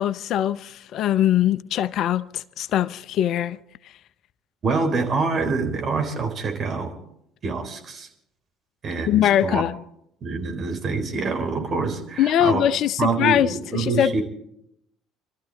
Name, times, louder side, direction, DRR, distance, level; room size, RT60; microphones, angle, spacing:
voice 1, 0.0-3.6 9.1-9.7 12.2-14.2, left 11 dB, 55° left, 0.6 m, -22 dB
voice 2, 4.6-6.9 7.4-8.1 8.8-9.6 10.2-12.6 13.0-14.2, right 4 dB, 45° right, 3.8 m, -26 dB
26.0 x 13.5 x 4.0 m
hypercardioid pair, 60°, 0 cm